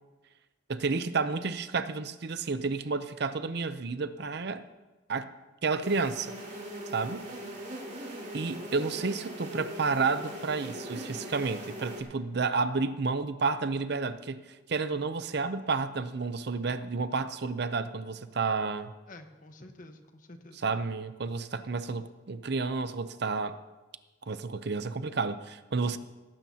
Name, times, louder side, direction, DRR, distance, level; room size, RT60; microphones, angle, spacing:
voice 1, 0.7-4.6 5.1-5.3 5.6-6.3 6.9-7.3 8.3-18.9 20.6-23.6 24.2-26.0, right 4 dB, 60° right, 0.7 m, -31 dB
sound 1, 5.8-12.0, right 1 dB, 45° right, 4.6 m, -40 dB
voice 2, 8.6-8.9 19.1-20.6 25.9-26.0, left 2 dB, 45° left, 1.3 m, -50 dB
17.5 x 15.5 x 2.9 m
head